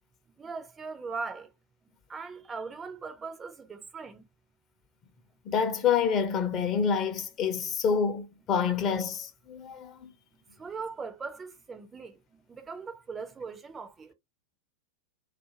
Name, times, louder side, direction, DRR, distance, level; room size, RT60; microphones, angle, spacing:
voice 1, 0.4-1.5 2.1-4.2 10.6-14.1, right 4 dB, 20° right, 0.4 m, -40 dB
voice 2, 5.5-10.1, left 6 dB, 30° left, 0.6 m, -27 dB
2.5 x 2.4 x 2.7 m
figure-of-eight pair, 90°, 0 cm